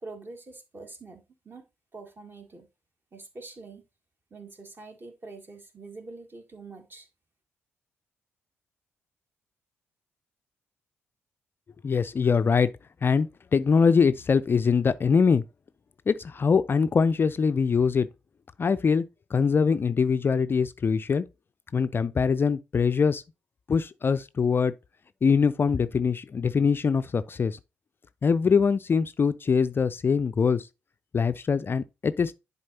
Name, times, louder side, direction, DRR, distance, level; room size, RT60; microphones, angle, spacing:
voice 1, 0.0-1.6 1.9-2.7 3.1-3.8 4.3-7.1, right 3 dB, 30° right, 1.7 m, -45 dB
voice 2, 11.8-12.7 13.0-15.4 16.1-18.1 18.6-19.0 19.3-21.2 21.7-23.2 23.7-24.7 25.2-27.6 28.2-30.7 31.1-32.3, left 5 dB, 35° left, 0.4 m, -23 dB
10.5 x 4.1 x 2.7 m
figure-of-eight pair, 40°, 7 cm